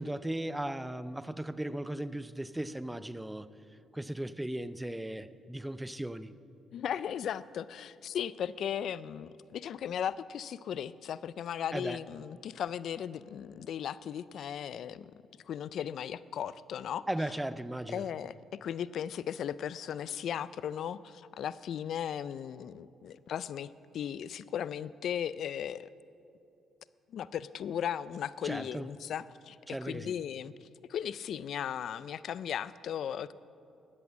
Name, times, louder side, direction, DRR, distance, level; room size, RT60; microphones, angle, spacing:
voice 1, 0.0-3.5 3.9-6.3 11.7-12.0 17.1-18.0 28.4-28.9 29.7-30.2, right 1 dB, 10° right, 0.5 m, -37 dB
voice 2, 6.7-15.1 15.5-17.1 17.9-18.3 18.6-23.7 23.9-25.9 27.1-29.6 29.8-33.3, left 9 dB, 70° left, 0.3 m, -36 dB
13.5 x 12.0 x 7.3 m
cardioid pair, 90°, 0 cm